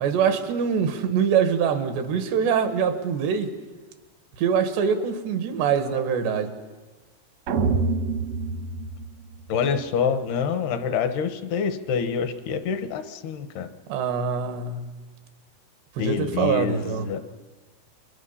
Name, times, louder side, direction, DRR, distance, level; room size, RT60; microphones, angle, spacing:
voice 1, 0.0-3.5 4.4-6.5 13.9-14.9 16.0-17.1, right 7 dB, 85° right, 7 dB, 3.6 m, -24 dB
sound 1, 7.5-9.8, right 4 dB, 65° right, 1.6 m, -26 dB
voice 2, 9.5-13.7 16.0-17.2, left 6 dB, 75° left, 9 dB, 3.2 m, -26 dB
29.0 x 23.5 x 5.6 m, 1.3 s
omnidirectional pair, 4.8 m